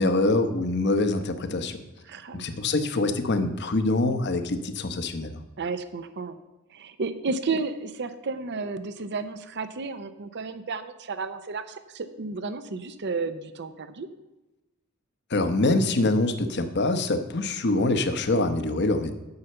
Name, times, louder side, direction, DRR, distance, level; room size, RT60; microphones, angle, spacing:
voice 1, 0.0-1.8 2.3-5.4 15.3-19.2, left 2 dB, 55° left, 9 dB, 0.9 m, -24 dB
voice 2, 2.0-2.5 5.6-6.4 6.7-14.1, right 4 dB, 55° right, 11 dB, 0.6 m, -32 dB
9.6 x 5.7 x 7.7 m, 1.1 s
head